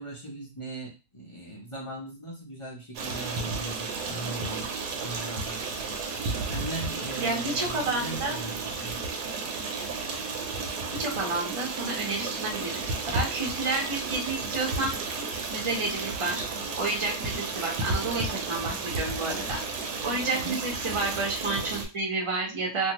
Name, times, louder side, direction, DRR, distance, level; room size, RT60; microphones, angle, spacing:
voice 1, 0.0-4.7 5.0-5.6 6.5-9.0 20.4-20.6, right 2 dB, 55° left, -4 dB, 0.3 m, -39 dB
Stream, 3.0-21.9, right 3 dB, 70° right, 1.2 m, -33 dB
voice 2, 7.2-8.4 11.0-12.8 13.1-16.4 16.7-19.6 20.0-22.9, right 3 dB, 25° right, -2 dB, 0.7 m, -30 dB
2.6 x 2.6 x 2.9 m, 0.30 s
omnidirectional pair, 1.8 m